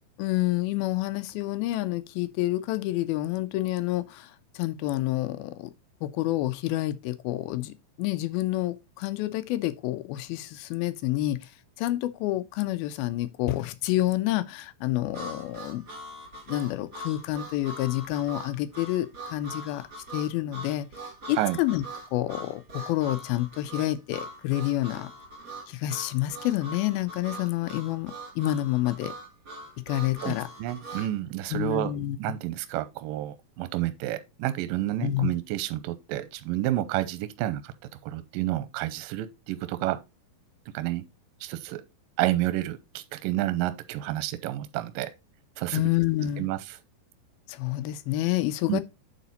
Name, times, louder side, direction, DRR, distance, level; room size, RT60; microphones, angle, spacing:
voice 1, 0.2-4.3 4.6-5.7 6.0-11.4 11.8-15.8 16.5-19.8 20.1-20.9 21.3-21.8 22.1-25.1 25.7-29.1 29.9-30.5 31.5-32.2 35.0-35.3 45.7-46.5 47.5-48.8, left 15 dB, 80° left, 2.4 m, -28 dB
Harmonica, 15.1-31.1, right 1 dB, 35° right, 1.7 m, -42 dB
voice 2, 30.2-31.9 32.2-37.7 38.0-40.0 40.7-41.0 41.4-41.8 42.2-45.1 45.6-45.8 46.4-46.8 48.7-48.8, right 15 dB, 80° right, 2.2 m, -30 dB
8.6 x 4.1 x 4.0 m
omnidirectional pair, 4.4 m